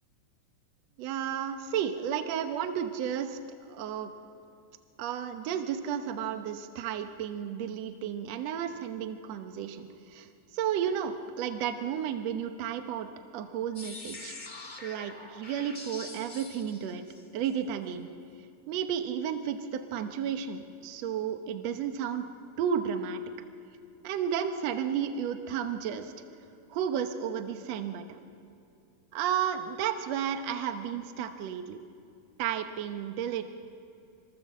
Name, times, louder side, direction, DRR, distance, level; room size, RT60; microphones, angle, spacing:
voice 1, 1.0-3.4 3.7-4.1 5.0-10.3 10.5-13.1 13.3-14.3 14.8-17.0 17.3-18.1 18.7-22.3 22.6-23.2 24.0-26.1 26.7-28.2 29.1-31.8 32.4-33.4, right 8 dB, 70° right, 7 dB, 1.6 m, -32 dB
sound 1, 13.7-17.5, left 2 dB, 25° left, 1.1 m, -44 dB
26.5 x 25.5 x 7.4 m, 2.6 s
omnidirectional pair, 4.3 m